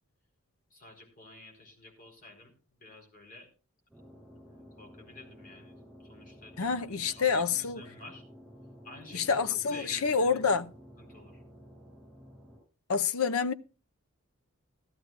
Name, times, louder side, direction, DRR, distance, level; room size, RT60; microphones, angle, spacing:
voice 1, 0.7-2.5 2.8-3.5 4.3-7.4 7.7-8.2 8.8-10.3 11.0-11.4, left 2 dB, 40° left, 4.4 m, -51 dB
sound 1, 3.9-12.6, equal, 5° left, 8.0 m, -52 dB
voice 2, 6.6-7.8 9.1-10.7 12.9-13.5, left 5 dB, 90° left, 0.7 m, -28 dB
16.0 x 13.0 x 2.4 m
head